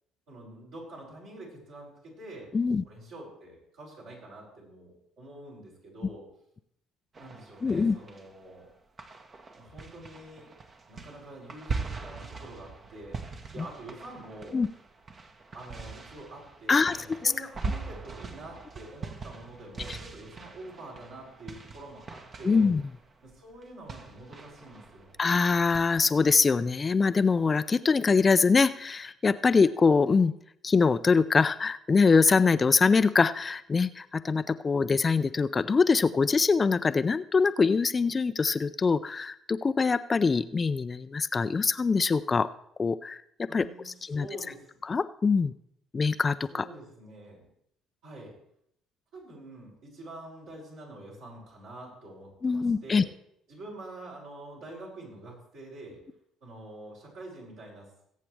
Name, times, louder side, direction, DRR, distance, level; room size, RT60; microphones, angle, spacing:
voice 1, 0.3-2.5 2.8-6.3 7.2-8.7 9.5-10.5 10.9-13.2 13.5-14.6 15.5-22.7 23.2-25.1 43.5-44.7 46.5-47.4 48.0-48.3 49.1-53.1 53.5-56.0 56.4-57.9, right 2 dB, 65° right, -5 dB, 6.5 m, -46 dB
voice 2, 2.5-2.8 7.6-8.0 13.6-13.7 14.5-14.7 16.7-17.0 17.2-17.3 19.9-20.0 22.4-22.8 25.2-30.3 30.6-42.5 42.8-44.3 44.9-45.5 45.9-46.7 52.4-53.0, left 4 dB, 30° left, 13 dB, 0.5 m, -24 dB
sound 1, 7.1-8.6 9.0-25.8, right 4 dB, 40° right, 1.3 m, -41 dB
21.5 x 8.4 x 3.4 m, 0.73 s
figure-of-eight pair, 50°, 0 cm